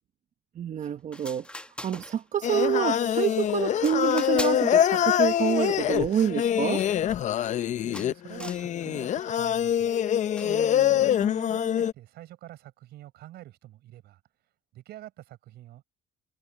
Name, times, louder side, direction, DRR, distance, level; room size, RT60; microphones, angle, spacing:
voice 1, 0.5-6.9 10.4-11.0, right 9 dB, 45° right, 1.1 m, -28 dB
sound 1, 0.8-0.9 1.1-2.5 2.9-3.3 3.8-4.8 5.1-7.6 7.9-8.7 9.1-9.5 10.4-10.6, left 1 dB, 5° left, 1.4 m, -43 dB
Singing, 2.4-11.9, left 10 dB, 45° left, 0.5 m, -25 dB
voice 2, 7.8-9.9 11.0-14.2 14.7-15.8, right 14 dB, 75° right, 5.5 m, -46 dB
cardioid pair, 110°, 17 cm